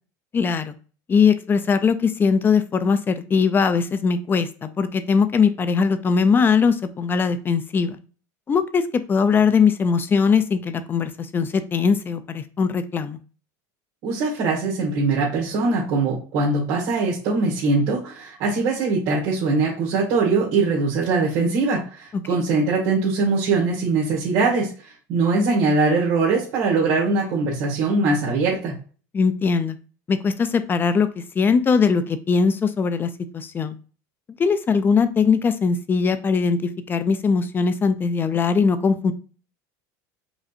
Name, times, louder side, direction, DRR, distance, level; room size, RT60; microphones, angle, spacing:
voice 1, 0.3-0.7 1.1-8.0 8.5-8.8 9.1-13.2 22.3-22.4 29.1-29.8 30.1-33.7 34.4-39.1, left 5 dB, 25° left, 11 dB, 0.4 m, -20 dB
voice 2, 14.0-28.7, right 3 dB, 60° right, -7 dB, 1.8 m, -22 dB
5.0 x 2.6 x 2.6 m, 0.38 s
supercardioid pair, 125°, 9 cm